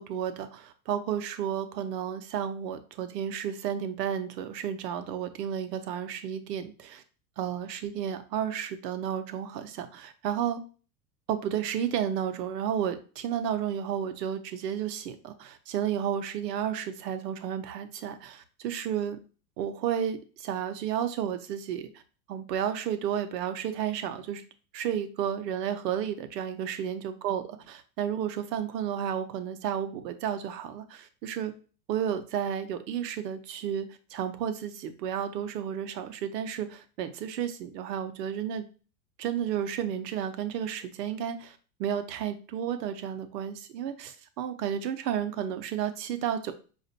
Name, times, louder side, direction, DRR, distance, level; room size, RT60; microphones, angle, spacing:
voice 1, 0.0-7.0 7.4-10.6 11.3-19.2 19.6-21.9 22.3-24.4 24.7-31.5 31.9-38.6 39.2-46.5, right 9 dB, 80° right, 9 dB, 0.8 m, -32 dB
4.9 x 2.5 x 2.7 m, 0.37 s
hypercardioid pair, 105°, 49 cm